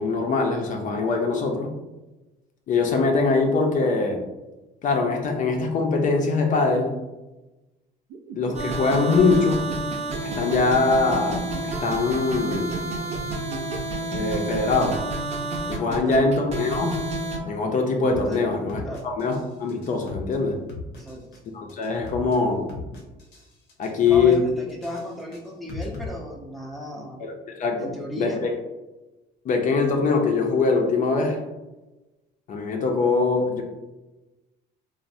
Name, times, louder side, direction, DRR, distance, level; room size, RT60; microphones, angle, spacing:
voice 1, 0.0-1.7 2.7-4.2 4.8-7.0 8.3-9.7 10.3-12.8 14.1-15.0 15.7-17.0 17.5-20.6 21.5-22.6 23.8-24.4 27.2-27.9 28.2-28.6 29.4-31.4 32.5-33.6, left 4 dB, 50° left, 2 dB, 0.5 m, -23 dB
sound 1, 8.1-14.0, right 6 dB, 85° right, 0.4 m, -38 dB
sound 2, 8.5-17.4, right 2 dB, 40° right, 0.6 m, -30 dB
voice 2, 15.9-16.2 18.3-18.5 18.8-19.0 20.9-21.4 24.1-27.2 27.8-28.4, equal, ahead, -2 dB, 0.5 m, -35 dB
sound 3, 18.1-18.3 18.7-19.4 19.7-20.3 20.7-21.4 21.7-22.3 22.7-23.4 23.7-24.4 24.7-26.1, left 3 dB, 85° left, 0.7 m, -37 dB
3.0 x 2.0 x 2.5 m, 1.0 s
cardioid pair, 110°, 17 cm